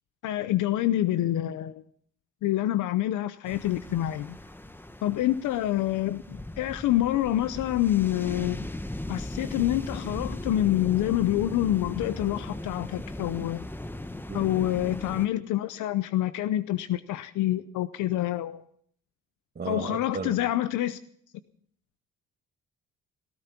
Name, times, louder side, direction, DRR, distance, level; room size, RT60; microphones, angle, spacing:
voice 1, 0.2-1.8 2.4-4.4 5.0-8.7 9.1-13.6 14.3-18.6 19.7-21.0, left 14 dB, 85° left, 14 dB, 0.7 m, -27 dB
sound 1, 3.4-15.3, left 1 dB, 5° left, 1.0 m, -38 dB
voice 2, 19.6-20.5, right 5 dB, 35° right, 1 dB, 1.7 m, -34 dB
17.0 x 14.5 x 5.9 m, 0.62 s
cardioid pair, 90°, 30 cm